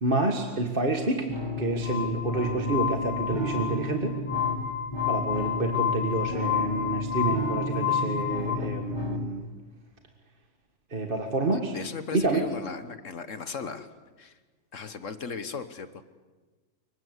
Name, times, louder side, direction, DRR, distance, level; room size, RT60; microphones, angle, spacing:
voice 1, 0.0-1.3 1.6-4.2 5.1-9.5 10.9-11.7 12.1-12.4, right 2 dB, 35° right, 4 dB, 1.9 m, -28 dB
sound 1, 1.3-9.3, left 2 dB, 15° left, 2.3 m, -33 dB
Glass, 1.8-8.6, left 9 dB, 80° left, 2.5 m, -30 dB
voice 2, 11.7-13.9 14.2-14.3 14.7-16.0, left 5 dB, 60° left, 11 dB, 1.5 m, -36 dB
26.0 x 23.0 x 8.2 m, 1.3 s
omnidirectional pair, 1.5 m